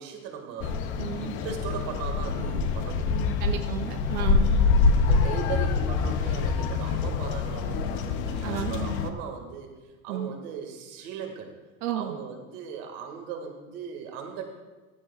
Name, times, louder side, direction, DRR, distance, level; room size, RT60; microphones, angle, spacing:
voice 1, 0.0-0.8 1.1-3.2 5.0-11.5 11.9-14.5, right 7 dB, 45° right, 3 dB, 2.1 m, -38 dB
sound 1, 0.6-9.1, left 4 dB, 30° left, 0.5 m, -25 dB
voice 2, 1.0-1.4 3.4-4.6 8.4-9.0 10.1-10.3 11.8-12.2, right 10 dB, 90° right, 5 dB, 0.9 m, -33 dB
15.0 x 13.0 x 2.4 m, 1.3 s
supercardioid pair, 165°, 43 cm